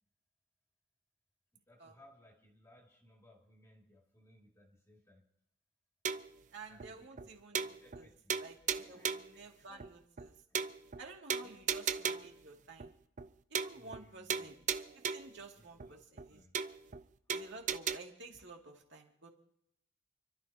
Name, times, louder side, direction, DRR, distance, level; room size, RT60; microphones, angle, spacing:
voice 1, 1.5-5.2 6.7-7.3 7.6-8.4 8.8-9.4 10.5-10.8 11.4-11.6 13.7-14.5 15.6-16.5, left 1 dB, 15° left, 0 dB, 2.3 m, -63 dB
sound 1, 6.0-6.4 6.8-6.9 7.2-7.3 7.5-8.0 8.3-9.3 9.8-9.9 10.2-10.3 10.5-11.0 11.3-12.4 12.8-12.9 13.2-13.3 13.5-14.0 14.3-15.4 15.8-15.9 16.2-16.3 16.5-17.0 17.3-18.0, right 7 dB, 40° right, 0.5 m, -36 dB
voice 2, 6.5-8.1 8.4-8.6 8.9-10.3 11.0-12.9 13.5-14.6 14.9-16.4 17.3-19.3, right 3 dB, 60° right, 1 dB, 2.5 m, -52 dB
29.5 x 12.5 x 2.9 m, 0.74 s
head